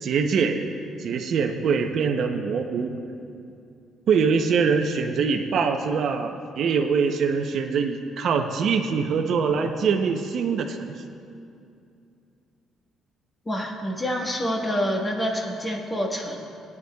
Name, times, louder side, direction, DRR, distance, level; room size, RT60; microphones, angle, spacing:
voice 1, 0.0-3.0 4.1-10.9, right 5 dB, 60° right, 4 dB, 0.6 m, -24 dB
voice 2, 13.5-16.4, equal, 15° left, 0 dB, 1.3 m, -27 dB
20.0 x 9.5 x 2.3 m, 2.5 s
cardioid pair, 125°, 0 cm